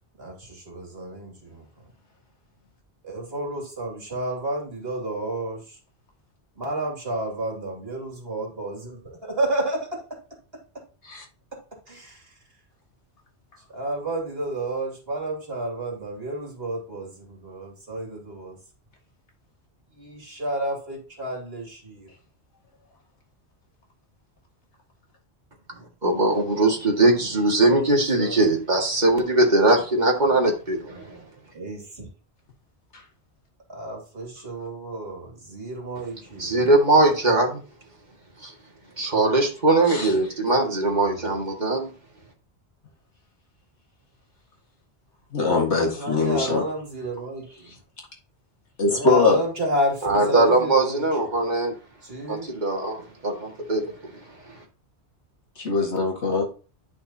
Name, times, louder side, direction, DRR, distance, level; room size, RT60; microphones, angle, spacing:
voice 1, 0.2-1.7 3.0-5.8 6.6-8.8 9.1-10.2 11.9-12.3 13.7-18.6 19.9-22.1 27.8-28.4 31.5-32.1 33.7-36.6 40.8-41.4 45.9-47.7 48.9-51.0 52.0-52.6, right 1 dB, 60° right, 2.8 m, -31 dB
voice 2, 26.0-31.2 36.4-37.6 38.4-38.5 39.0-41.9 50.0-51.7 52.3-54.1 54.5-54.6, right 2 dB, 40° right, 2.2 m, -21 dB
voice 3, 45.3-46.6 48.8-49.4 55.6-56.4, left 3 dB, 85° left, 2.1 m, -22 dB
11.0 x 6.0 x 2.9 m
omnidirectional pair, 1.1 m